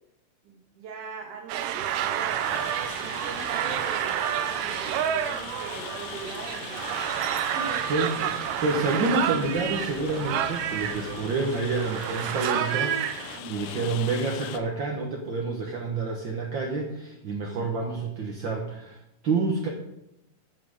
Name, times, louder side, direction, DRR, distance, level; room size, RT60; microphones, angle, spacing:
voice 1, 0.4-6.9 7.5-7.9 13.3-13.9, right 4 dB, 70° right, 1 dB, 3.6 m, -41 dB
sound 1, 1.5-13.4, right 10 dB, 90° right, 2.4 m, -29 dB
sound 2, 2.2-12.3, right 2 dB, 25° right, 1.6 m, -47 dB
Rain, 2.4-14.6, left 11 dB, 85° left, 2.2 m, -41 dB
voice 2, 7.9-19.7, right 3 dB, 50° right, -1 dB, 1.5 m, -28 dB
13.0 x 6.0 x 6.7 m, 0.84 s
omnidirectional pair, 3.8 m